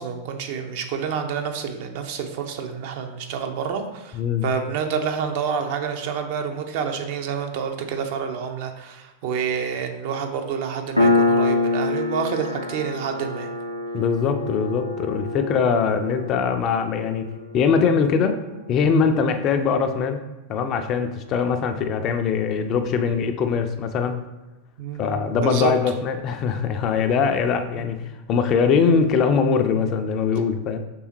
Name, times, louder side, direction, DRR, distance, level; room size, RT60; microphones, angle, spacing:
voice 1, 0.0-13.5 24.8-25.0 25.4-25.7 27.7-27.8, right 7 dB, 50° right, 5 dB, 0.5 m, -28 dB
voice 2, 4.1-4.4 13.9-17.3 17.5-18.4 18.7-20.2 20.5-24.2 25.0-28.0 28.3-30.8, left 6 dB, 35° left, 7 dB, 0.4 m, -22 dB
Piano, 11.0-18.1, left 2 dB, 85° left, 0.5 m, -25 dB
5.3 x 3.3 x 3.0 m, 1.1 s
figure-of-eight pair, 90°, 0 cm